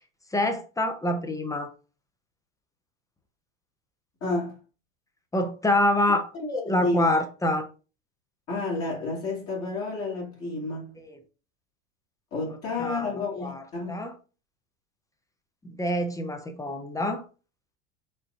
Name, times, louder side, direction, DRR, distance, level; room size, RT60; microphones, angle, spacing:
voice 1, 0.3-1.7 5.3-6.3 6.7-7.7 11.0-11.2 12.8-13.1 13.4-14.1 15.6-17.2, left 1 dB, 10° left, 0.6 m, -26 dB
voice 2, 4.2-4.6 6.3-7.1 8.5-11.0 12.3-14.0, left 2 dB, 40° left, 1.9 m, -30 dB
4.4 x 3.8 x 2.5 m
hypercardioid pair, 95°, 37 cm